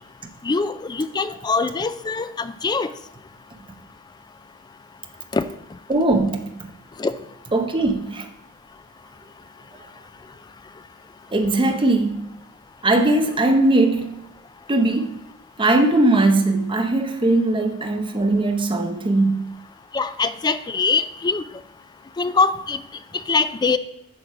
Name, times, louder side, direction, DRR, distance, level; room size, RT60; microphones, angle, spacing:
voice 1, 0.4-2.9 5.3-5.4 7.0-7.1 19.9-21.4 22.2-22.8 23.3-23.8, left 4 dB, 20° left, 0.3 m, -22 dB
voice 2, 5.9-6.5 7.5-8.3 11.3-12.3 12.8-14.2 14.7-15.2 15.6-19.5, right 2 dB, 25° right, 0.7 m, -19 dB
8.6 x 5.2 x 4.6 m
head